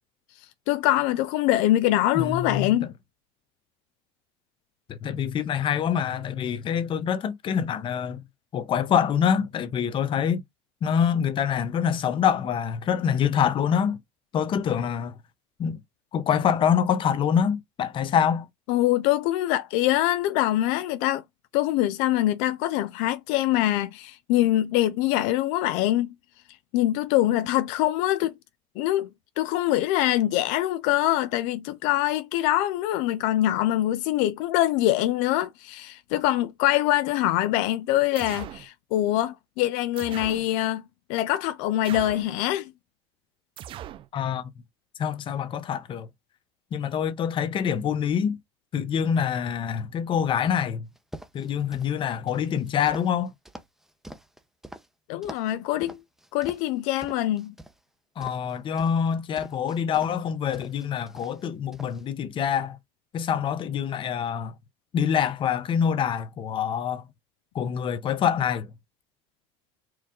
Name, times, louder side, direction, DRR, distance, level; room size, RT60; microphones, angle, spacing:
voice 1, 0.7-2.9 18.7-21.2 21.5-26.1 26.7-28.3 28.8-29.1 29.4-40.8 41.1-42.7 55.1-56.0 56.3-57.5, left 14 dB, 75° left, 0.5 m, -24 dB
voice 2, 2.1-2.9 4.9-8.2 8.5-10.4 10.8-14.0 14.3-15.1 15.6-15.8 16.1-18.5 44.1-44.4 45.0-46.1 46.7-48.4 48.7-50.9 51.3-53.3 58.2-62.8 63.1-64.5 64.9-67.0 67.5-68.7, left 8 dB, 40° left, 0.8 m, -25 dB
sound 1, 38.2-38.7 40.0-40.5 41.8-42.4 43.6-44.1, right 11 dB, 45° right, 0.4 m, -39 dB
sound 2, 51.0-51.9 52.3-54.9 55.2-55.5 55.8-56.7 57.0-57.8 58.2-60.2 60.5-61.5 61.7-62.0, right 1 dB, 5° right, 0.7 m, -44 dB
4.6 x 2.3 x 3.7 m
supercardioid pair, 110°, 13 cm